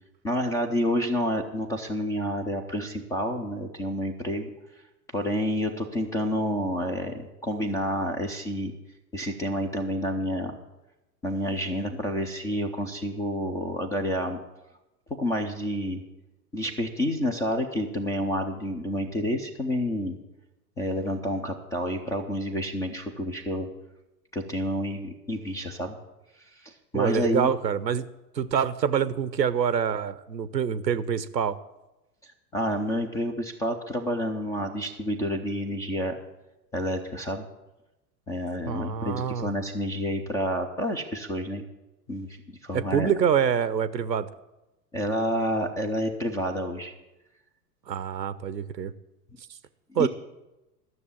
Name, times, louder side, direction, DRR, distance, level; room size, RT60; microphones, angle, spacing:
voice 1, 0.2-4.5 5.1-8.7 9.1-10.6 11.2-14.4 15.2-16.0 16.5-20.2 20.8-23.7 24.3-26.0 26.6-27.5 32.5-36.2 36.7-37.5 38.3-41.6 42.1-43.1 44.9-46.9 49.9-50.1, equal, 10° left, 5 dB, 0.3 m, -29 dB
voice 2, 26.9-28.1 28.3-31.6 38.7-39.5 42.7-44.3 47.9-48.9 49.9-50.1, right 8 dB, 85° right, 16 dB, 0.8 m, -26 dB
12.5 x 6.8 x 8.4 m, 0.99 s
figure-of-eight pair, 90°, 49 cm